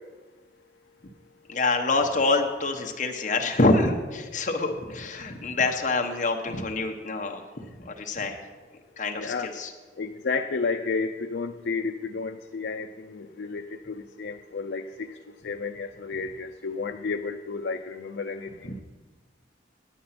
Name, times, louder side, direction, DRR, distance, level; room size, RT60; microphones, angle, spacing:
voice 1, 1.5-7.4 7.8-8.4 9.0-9.7 18.6-18.8, left 3 dB, 45° left, 3 dB, 1.0 m, -26 dB
voice 2, 9.2-9.5 10.0-15.1 15.4-18.5, left 4 dB, 75° left, 5 dB, 0.5 m, -31 dB
9.2 x 8.5 x 5.8 m, 1.3 s
head